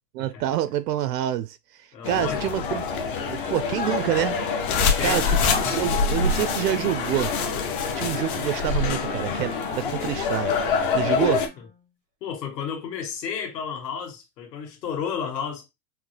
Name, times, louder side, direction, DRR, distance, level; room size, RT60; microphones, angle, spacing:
voice 1, 0.1-1.6 2.1-2.8 3.2-4.4 5.0-7.3 8.0-11.4, right 12 dB, 70° right, 0.5 m, -27 dB
voice 2, 1.9-2.5 4.9-5.4 11.6-11.7 12.2-15.6, left 7 dB, 75° left, 1.9 m, -32 dB
sound 1, 2.0-11.5, left 6 dB, 35° left, 0.5 m, -27 dB
Wind instrument woodwind instrument, 3.4-11.9, right 1 dB, 10° right, 0.5 m, -43 dB
sound 2, 4.6-9.1, left 4 dB, 60° left, 1.2 m, -26 dB
5.9 x 2.1 x 3.2 m
supercardioid pair, 180°, 50 cm